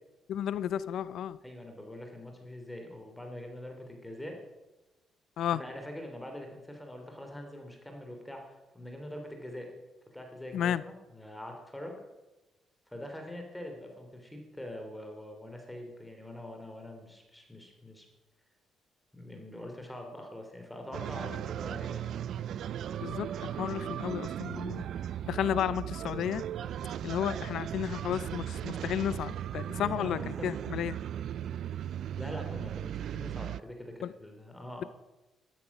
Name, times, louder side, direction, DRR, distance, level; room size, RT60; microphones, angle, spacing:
voice 1, 0.3-1.4 5.4-5.6 10.5-10.8 23.0-24.8 25.3-26.5 27.0-31.0 34.0-34.1, left 10 dB, 75° left, 0.5 m, -32 dB
voice 2, 1.4-4.4 5.5-9.7 10.1-12.0 12.9-18.1 19.1-22.1 29.8-30.5 32.2-34.9, left 1 dB, 5° left, 3.2 m, -44 dB
sound 1, 20.9-33.6, right 10 dB, 70° right, 0.4 m, -37 dB
13.0 x 12.5 x 6.0 m
cardioid pair, 90°, 0 cm